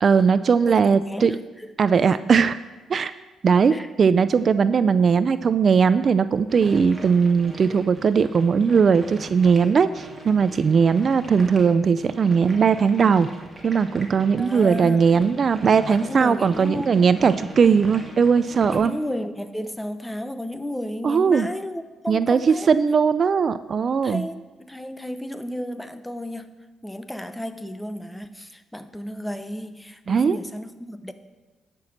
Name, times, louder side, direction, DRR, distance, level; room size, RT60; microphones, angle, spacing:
voice 1, 0.0-1.3 1.8-2.6 2.9-3.1 3.4-13.3 13.6-18.9 21.0-21.5 22.1-22.4 22.7-24.2 30.1-30.4, right 6 dB, 45° right, 14 dB, 0.4 m, -19 dB
voice 2, 0.7-1.7 3.7-3.9 14.4-15.0 15.9-16.9 18.7-22.7 24.0-26.6 26.8-31.1, left 1 dB, 5° left, 11 dB, 0.8 m, -33 dB
sound 1, 6.5-18.8, right 2 dB, 10° right, 2.4 m, -41 dB
10.5 x 6.1 x 7.2 m, 1.2 s
cardioid pair, 90°, 0 cm